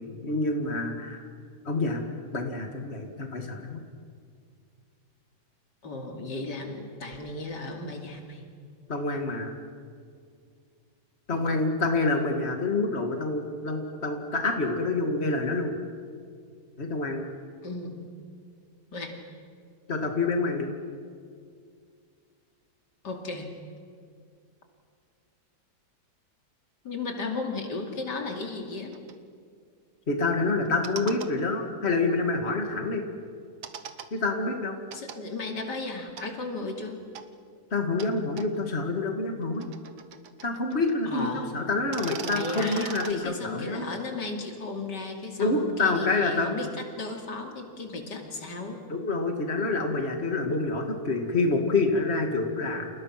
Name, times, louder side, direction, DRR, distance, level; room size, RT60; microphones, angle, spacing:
voice 1, 0.2-1.2 1.6-2.0 2.3-3.8 8.9-9.5 11.3-15.7 16.8-17.3 19.9-20.7 30.1-33.0 34.1-34.8 37.7-39.7 40.4-43.9 45.4-46.5 48.9-52.9, left 3 dB, 40° left, 3 dB, 2.6 m, -27 dB
voice 2, 5.8-8.5 11.3-11.6 17.6-18.1 18.9-19.2 23.0-23.6 26.8-28.9 34.9-37.0 41.1-41.6 42.2-48.8, left 3 dB, 85° left, 2 dB, 3.3 m, -35 dB
sound 1, 28.9-29.1 30.7-31.3 33.6-34.1 34.9-35.2 36.2-36.3 37.2-37.3 38.0-38.1 38.4-38.5 39.4-40.9 41.2-41.3 41.8-43.1, right 8 dB, 80° right, 1.7 m, -39 dB
30.0 x 28.5 x 6.0 m, 2.2 s
omnidirectional pair, 1.8 m